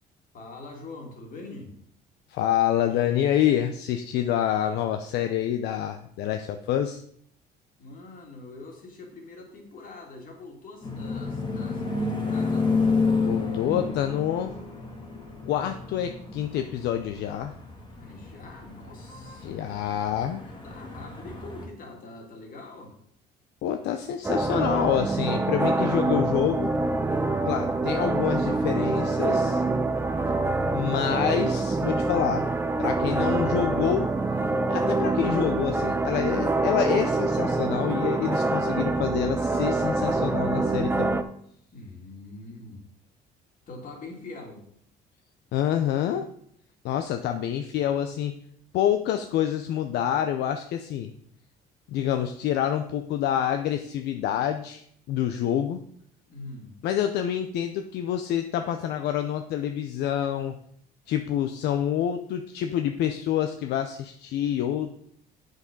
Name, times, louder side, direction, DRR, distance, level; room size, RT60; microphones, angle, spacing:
voice 1, 0.3-1.8 7.8-12.7 18.0-20.0 20.6-23.0 41.7-42.8 43.7-44.6 56.3-56.8, left 3 dB, 55° left, 2 dB, 2.7 m, -44 dB
voice 2, 2.3-7.0 13.2-14.5 15.5-17.5 19.4-20.4 23.6-26.7 27.5-29.6 30.7-32.4 32.8-34.1 34.7-41.2 45.5-46.3 46.8-48.3 48.7-51.1 51.9-55.8 56.8-60.5 61.1-65.0, left 10 dB, 80° left, 7 dB, 0.7 m, -27 dB
sound 1, 10.8-21.7, left 4 dB, 30° left, 2.0 m, -30 dB
sound 2, 24.2-41.2, right 3 dB, 15° right, 0.6 m, -25 dB
7.4 x 6.6 x 5.3 m, 0.65 s
cardioid pair, 110°, 17 cm